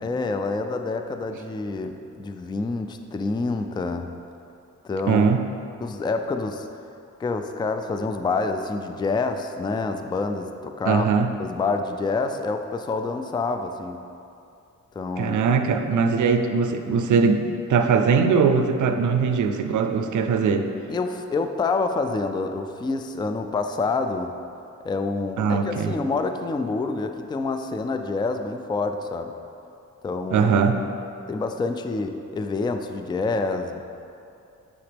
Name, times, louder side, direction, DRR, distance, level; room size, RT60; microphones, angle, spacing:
voice 1, 0.0-4.1 4.8-5.2 5.8-6.7 7.2-11.1 11.4-14.0 15.0-15.4 20.9-24.4 24.8-29.3 30.0-30.5 31.3-33.8, left 3 dB, 15° left, 7 dB, 0.3 m, -27 dB
voice 2, 5.1-5.4 10.9-11.3 15.2-20.7 25.4-25.9 30.3-30.8, right 5 dB, 80° right, 7 dB, 0.5 m, -21 dB
8.6 x 4.1 x 3.4 m, 2.6 s
cardioid pair, 75°, 30 cm